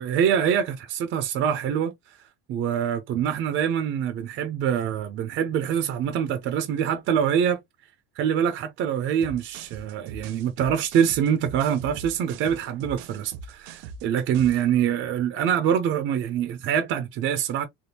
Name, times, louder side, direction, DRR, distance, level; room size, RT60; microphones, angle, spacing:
voice 1, 0.0-1.9 2.5-7.6 8.2-17.7, right 8 dB, 35° right, 0.4 m, -25 dB
sound 1, 9.2-14.7, right 5 dB, 80° right, 0.8 m, -41 dB
3.4 x 2.4 x 2.7 m
cardioid pair, 140°, 37 cm